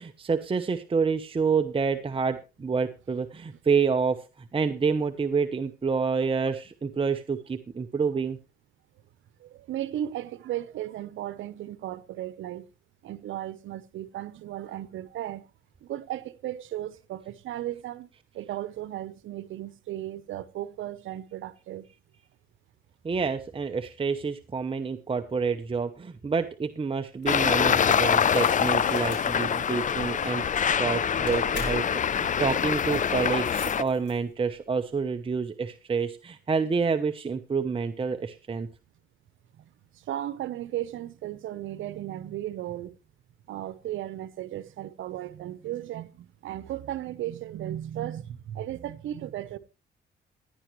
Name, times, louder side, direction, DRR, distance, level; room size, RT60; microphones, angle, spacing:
voice 1, 0.0-8.4 23.0-38.7, right 5 dB, 25° right, 0.9 m, -28 dB
voice 2, 9.4-12.6 13.0-15.4 15.8-18.1 18.3-21.8 39.6-39.7 40.0-43.0 43.5-49.6, right 12 dB, 80° right, 1.0 m, -35 dB
sound 1, 27.2-34.5, left 4 dB, 65° left, 5.4 m, -43 dB
Traffic noise roadway noise, 27.3-33.8, left 8 dB, 40° left, 0.6 m, -25 dB
16.5 x 10.5 x 3.2 m
cardioid pair, 90°, 20 cm